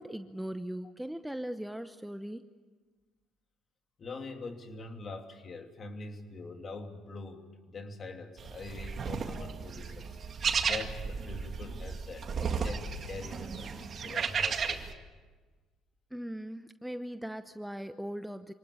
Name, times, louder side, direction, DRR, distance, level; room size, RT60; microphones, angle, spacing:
voice 1, 0.0-2.5 16.1-18.5, equal, 5° right, 10 dB, 0.8 m, -39 dB
voice 2, 4.0-14.9, left 3 dB, 40° left, 5 dB, 3.1 m, -44 dB
sound 1, 8.4-14.9, right 6 dB, 45° right, 2.0 m, -34 dB
26.0 x 18.5 x 8.7 m, 1.4 s
cardioid pair, 90°, 0 cm